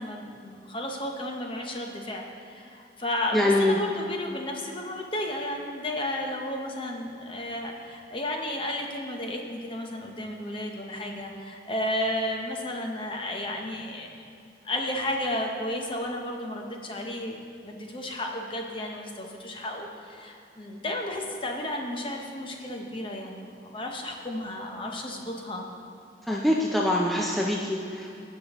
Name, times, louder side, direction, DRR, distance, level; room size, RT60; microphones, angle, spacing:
voice 1, 0.0-14.1 14.6-17.4 17.6-25.6, left 1 dB, 30° left, 2 dB, 0.8 m, -33 dB
voice 2, 3.3-3.8 26.2-28.1, left 1 dB, ahead, -3 dB, 0.5 m, -24 dB
16.5 x 5.7 x 3.0 m, 2.6 s
head